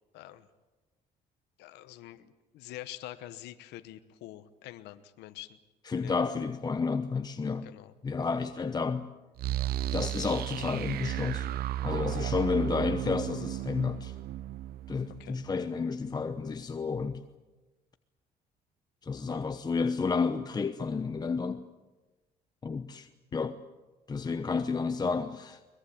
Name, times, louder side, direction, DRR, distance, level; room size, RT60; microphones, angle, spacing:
voice 1, 0.1-0.5 1.6-5.6 5.9-6.2 7.6-7.9 15.2-15.4, left 14 dB, 85° left, 1.1 m, -46 dB
voice 2, 5.9-7.7 8.0-9.1 9.9-11.5 11.8-14.1 14.9-17.2 19.0-21.7 22.6-23.6 24.1-25.6, left 4 dB, 25° left, 0.9 m, -31 dB
sound 1, 9.4-16.2, right 12 dB, 65° right, 0.8 m, -34 dB
23.0 x 21.5 x 8.6 m
cardioid pair, 110°, 17 cm